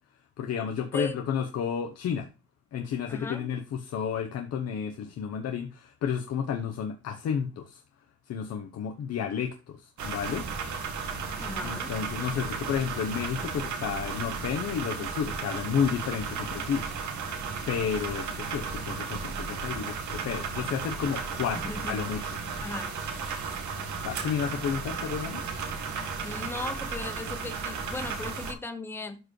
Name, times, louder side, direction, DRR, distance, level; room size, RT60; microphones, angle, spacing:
voice 1, 0.4-2.3 2.7-7.8 8.3-10.5 11.6-16.9 17.7-22.3 24.0-25.4, left 7 dB, 60° left, 1.0 m, -31 dB
voice 2, 3.1-3.5 11.4-11.9 21.5-22.0 22.6-23.0 26.2-29.2, left 3 dB, 10° left, 0.8 m, -37 dB
sound 1, 10.0-28.5, right 5 dB, 75° right, 2.1 m, -34 dB
12.0 x 4.7 x 3.2 m
cardioid pair, 170°, 29 cm